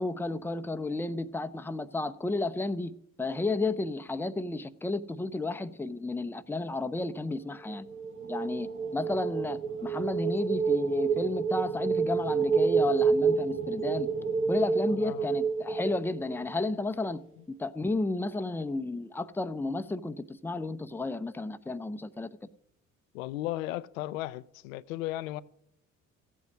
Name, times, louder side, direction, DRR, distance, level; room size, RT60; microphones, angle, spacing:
voice 1, 0.0-7.9 8.3-14.1 14.5-17.2 17.5-22.3, left 2 dB, 5° left, 0.7 m, -32 dB
sound 1, 7.7-16.6, right 5 dB, 30° right, 1.4 m, -29 dB
voice 2, 14.9-15.3 23.1-25.4, left 15 dB, 75° left, 0.5 m, -35 dB
15.5 x 8.2 x 6.1 m
figure-of-eight pair, 50°, 40 cm